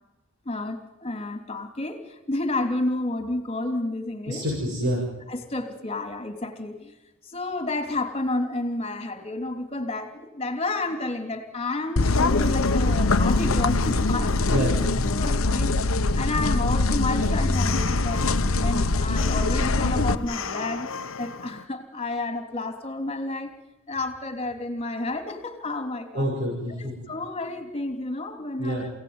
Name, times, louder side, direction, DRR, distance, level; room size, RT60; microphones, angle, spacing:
voice 1, 0.4-4.4 5.3-7.0 7.2-14.7 15.0-15.8 16.2-18.3 18.6-20.9 21.2-23.6 23.9-26.3 27.1-28.9, left 2 dB, 30° left, 7 dB, 3.1 m, -30 dB
voice 2, 4.3-5.0 14.5-15.1 26.1-26.9 28.6-28.8, equal, 55° right, -3 dB, 7.0 m, -27 dB
sound 1, 12.0-20.1, left 2 dB, 85° left, 1.1 m, -23 dB
sound 2, 12.0-21.7, left 6 dB, 65° left, 1.1 m, -37 dB
28.0 x 17.5 x 9.6 m, 1.0 s
head